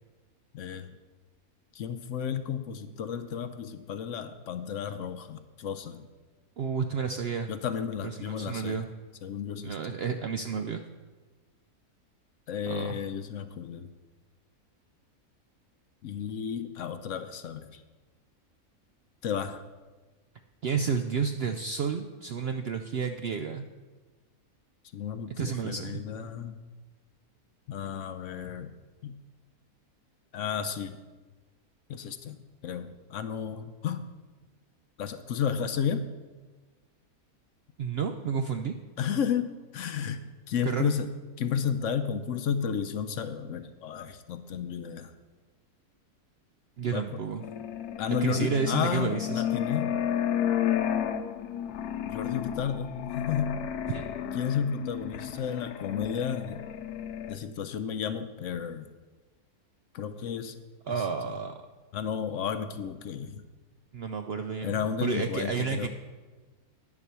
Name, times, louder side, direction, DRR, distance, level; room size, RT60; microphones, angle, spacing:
voice 1, 0.5-0.9 1.7-6.1 7.5-8.8 9.2-9.8 12.5-13.9 16.0-17.8 19.2-19.6 24.9-26.6 27.7-28.7 29.0-29.2 30.3-31.0 31.9-34.1 35.0-36.1 39.0-41.1 41.4-45.1 46.9-47.2 48.0-50.0 52.1-53.6 54.3-56.7 57.3-58.9 59.9-60.6 61.9-63.4 64.6-65.9, left 7 dB, 65° left, 10 dB, 0.8 m, -32 dB
voice 2, 6.6-7.5 8.0-8.9 9.6-10.8 12.7-13.0 20.6-23.7 25.4-26.0 37.8-38.7 40.6-40.9 46.8-47.4 48.2-49.4 53.9-54.0 60.9-61.5 63.9-65.9, right 6 dB, 65° right, 7 dB, 0.6 m, -31 dB
sound 1, 47.4-57.4, left 10 dB, 85° left, 1.2 m, -32 dB
9.9 x 7.3 x 6.8 m, 1.3 s
omnidirectional pair, 1.6 m